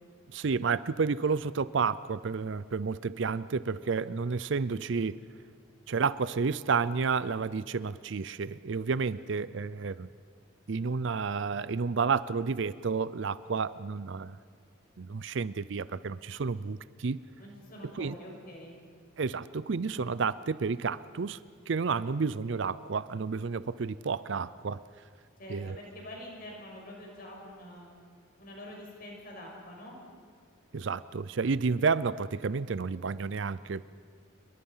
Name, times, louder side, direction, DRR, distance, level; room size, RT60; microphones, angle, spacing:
voice 1, 0.3-5.2 5.9-10.1 10.7-14.4 15.0-17.2 18.0-18.2 19.2-24.8 25.5-25.8 30.7-33.8, right 5 dB, 60° right, 17 dB, 0.5 m, -31 dB
voice 2, 17.4-18.7 25.4-27.9 28.4-30.0, left 1 dB, 45° left, -1 dB, 6.1 m, -46 dB
27.5 x 22.0 x 5.6 m, 2.1 s
head